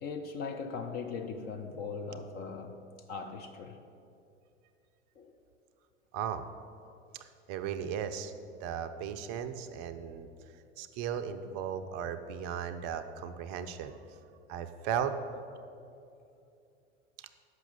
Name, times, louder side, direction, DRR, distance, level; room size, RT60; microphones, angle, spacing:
voice 1, 0.0-2.7 3.1-3.8 5.2-5.4 6.9-7.0, left 5 dB, 25° left, 5 dB, 0.4 m, -39 dB
voice 2, 6.1-6.5 7.2-8.3 8.6-10.3 10.8-14.0 14.5-15.1 17.2-17.3, right 8 dB, 35° right, 9 dB, 0.5 m, -36 dB
6.0 x 5.9 x 7.0 m, 2.6 s
figure-of-eight pair, 80°, 36 cm